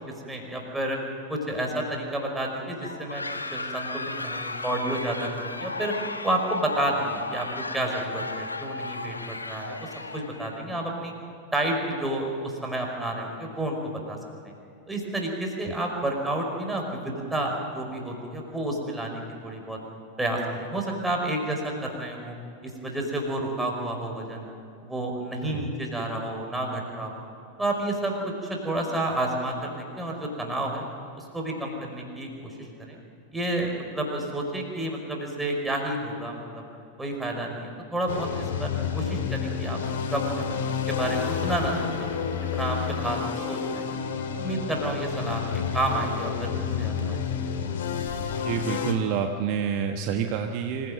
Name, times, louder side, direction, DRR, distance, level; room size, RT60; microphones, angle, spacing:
voice 1, 0.3-1.0 1.3-3.2 3.5-5.9 6.2-7.5 7.7-11.1 11.5-14.2 14.9-19.8 20.2-22.3 22.6-24.5 24.8-27.1 27.6-28.1 28.4-30.8 31.2-32.9 33.3-36.6 37.0-39.8 40.1-40.6 40.9-42.1 42.5-43.8 44.3-47.3, right 1 dB, 5° right, 1 dB, 5.3 m, -30 dB
sound 1, 2.8-10.6, left 3 dB, 80° left, 1.4 m, -35 dB
sound 2, 38.1-48.9, left 7 dB, 60° left, 2.3 m, -30 dB
voice 2, 48.4-50.9, right 7 dB, 45° right, 5 dB, 1.3 m, -28 dB
26.0 x 16.5 x 7.7 m, 2.7 s
figure-of-eight pair, 90°, 0 cm